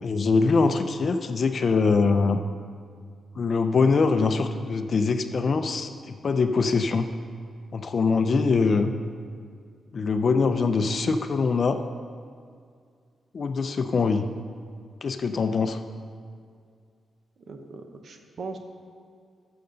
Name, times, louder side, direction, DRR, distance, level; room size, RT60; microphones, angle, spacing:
voice 1, 0.0-2.4 3.4-7.1 7.7-8.9 9.9-11.8 13.3-14.3 15.0-15.8, left 4 dB, 45° left, 8 dB, 0.5 m, -23 dB
voice 2, 17.4-18.6, right 4 dB, 55° right, 5 dB, 0.9 m, -39 dB
14.0 x 6.8 x 4.0 m, 2.2 s
wide cardioid pair, 140°, 0 cm